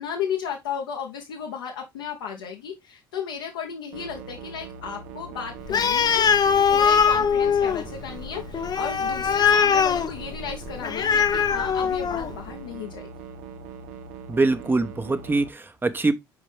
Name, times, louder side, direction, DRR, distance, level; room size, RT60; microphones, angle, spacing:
voice 1, 0.0-6.2 6.6-13.1, left 7 dB, 75° left, 1.1 m, -34 dB
sound 1, 3.9-15.5, right 5 dB, 65° right, 0.9 m, -41 dB
Animal, 5.7-12.4, left 7 dB, 35° left, 0.7 m, -22 dB
voice 2, 14.3-16.1, right 3 dB, 15° right, 1.0 m, -23 dB
5.9 x 5.1 x 3.3 m
hypercardioid pair, 60°, 12 cm